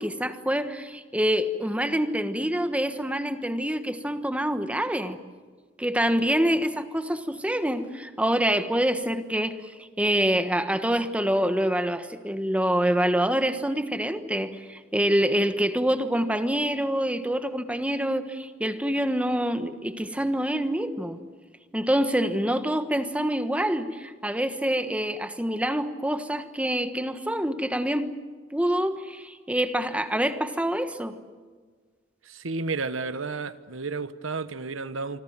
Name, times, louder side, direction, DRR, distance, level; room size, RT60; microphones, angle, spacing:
voice 1, 0.0-5.2 5.8-9.7 10.0-21.2 21.7-28.1 28.5-31.2, equal, 5° right, 1.3 m, -26 dB
voice 2, 32.2-35.2, right 4 dB, 80° right, 1.2 m, -32 dB
26.0 x 25.5 x 7.4 m
head